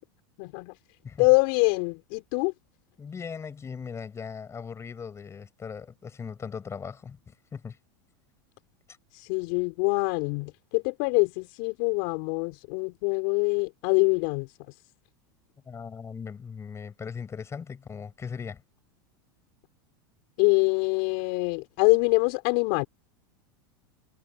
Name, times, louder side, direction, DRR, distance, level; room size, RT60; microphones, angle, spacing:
voice 1, 0.4-0.7 1.2-2.5 9.1-14.5 20.4-22.8, left 33 dB, 60° left, 3.2 m, -24 dB
voice 2, 3.0-7.8 15.6-18.6, left 6 dB, 25° left, 7.7 m, -39 dB
hypercardioid pair, 105°, 12 cm